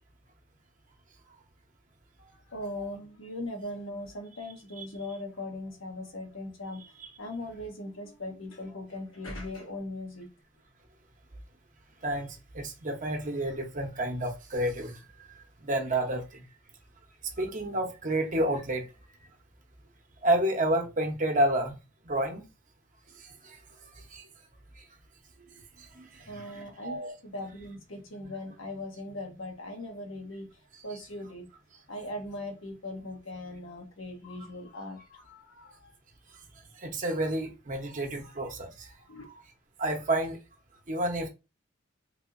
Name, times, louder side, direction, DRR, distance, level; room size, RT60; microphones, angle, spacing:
voice 1, 2.2-10.3 26.3-30.5 30.8-31.5 31.9-35.9 38.2-38.4 39.1-39.2, left 1 dB, 90° left, 1.0 m, -40 dB
voice 2, 12.0-16.4 17.4-18.9 20.2-21.8 22.0-22.5 23.1-24.3 24.8-24.9 25.8-27.1 30.7-30.8 36.8-38.9 39.2-39.4 39.8-40.4 40.9-41.3, right 1 dB, 40° right, 0.8 m, -30 dB
3.4 x 2.7 x 2.5 m
head